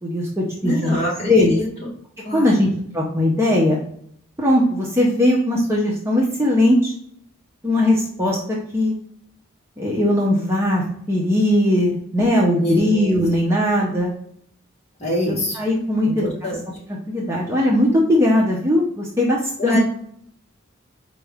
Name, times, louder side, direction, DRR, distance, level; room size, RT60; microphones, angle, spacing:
voice 1, 0.0-0.9 1.3-1.6 2.3-2.7 2.9-3.8 4.4-6.9 7.6-8.9 9.8-14.1 15.2-16.3 17.1-19.8, left 1 dB, 15° right, -3 dB, 0.6 m, -19 dB
voice 2, 0.6-1.7 2.2-2.7 12.6-12.9 15.0-15.6 16.0-16.6 19.6-19.8, equal, 30° left, -4 dB, 1.3 m, -25 dB
4.5 x 2.5 x 3.3 m, 0.65 s
head